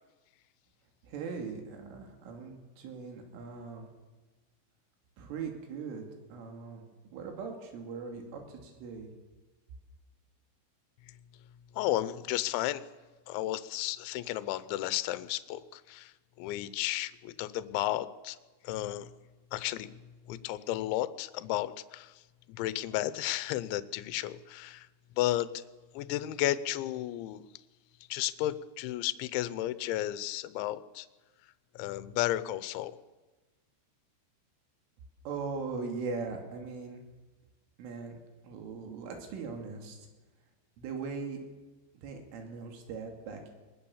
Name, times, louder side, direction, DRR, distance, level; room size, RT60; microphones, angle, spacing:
voice 1, 1.0-3.9 5.2-6.0 6.3-6.8 7.1-9.1 35.3-37.0 37.8-38.2 38.4-40.1 40.8-41.4 42.0-43.5, right 5 dB, 80° right, 3 dB, 5.2 m, -40 dB
voice 2, 11.8-12.8 13.3-16.1 16.4-18.4 18.6-19.1 19.5-19.9 20.3-22.1 22.5-24.9 25.2-25.5 25.9-27.5 28.1-31.1 31.8-33.0, left 14 dB, 80° left, 14 dB, 3.0 m, -33 dB
22.5 x 20.5 x 7.2 m, 1.2 s
omnidirectional pair, 5.6 m